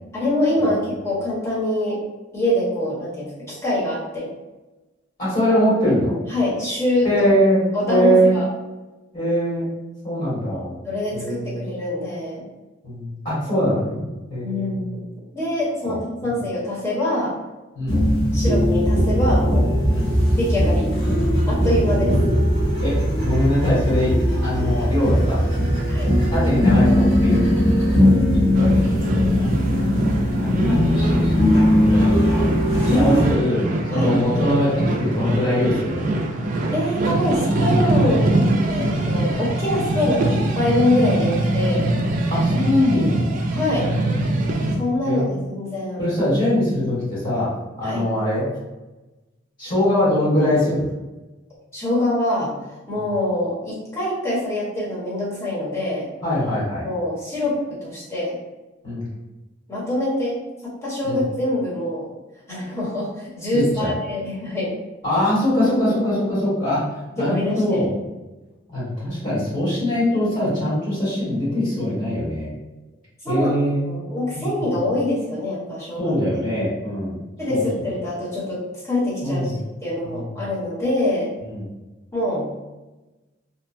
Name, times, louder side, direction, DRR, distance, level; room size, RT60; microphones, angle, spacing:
voice 1, 0.1-2.0 2.3-4.3 5.5-5.6 6.3-7.1 7.7-8.5 10.8-12.4 14.4-15.0 15.3-17.3 17.9-18.0 18.3-19.7 20.4-20.9 21.4-22.1 25.9-26.1 30.5-30.6 32.9-33.2 33.9-34.1 36.7-38.3 38.7-41.9 43.5-43.9 44.8-46.0 47.8-48.0 51.7-52.5 52.9-56.1 56.8-58.4 59.7-62.1 62.5-64.7 65.1-65.2 67.2-67.8 73.2-73.5 73.8-76.1 77.4-79.5 79.8-81.3 82.1-82.7, left 1 dB, 15° left, -8 dB, 0.9 m, -24 dB
voice 2, 5.2-6.2 7.0-8.4 9.1-9.7 10.0-10.7 11.1-11.6 12.8-14.8 15.8-16.0 16.2-16.4 17.7-18.0 19.8-20.1 22.0-22.3 22.8-25.4 25.8-27.4 28.0-29.5 30.4-32.2 32.8-33.6 33.9-36.1 39.9-40.0 42.3-43.4 44.1-44.5 45.0-45.3 46.0-48.4 49.6-50.9 56.2-56.9 58.8-59.0 61.0-61.2 63.5-63.9 65.0-66.8 67.1-67.9 68.7-72.5 73.2-73.9 74.3-74.7 76.0-77.2 77.5-77.6 79.2-79.6 80.1-80.5 81.5-81.6, equal, 45° left, -10 dB, 1.3 m, -22 dB
sound 1, 17.9-33.3, equal, 75° left, 1.1 m, -19 dB
sound 2, 28.5-44.7, right 1 dB, 45° right, 0.3 m, -23 dB
2.9 x 2.1 x 2.5 m, 1.1 s
head